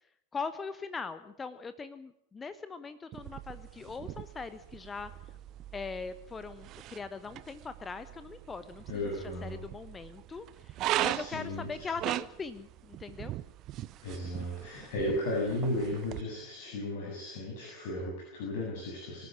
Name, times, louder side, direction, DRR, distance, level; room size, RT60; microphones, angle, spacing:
voice 1, 0.3-5.4 5.7-13.3, left 4 dB, 15° left, 13 dB, 1.0 m, -41 dB
sound 1, 3.1-16.2, right 14 dB, 35° right, 0.8 m, -39 dB
voice 2, 8.9-9.6 11.1-11.7 14.0-19.3, left 1 dB, 50° left, -2 dB, 7.5 m, -35 dB
25.0 x 12.5 x 9.8 m, 0.76 s
figure-of-eight pair, 90°, 0 cm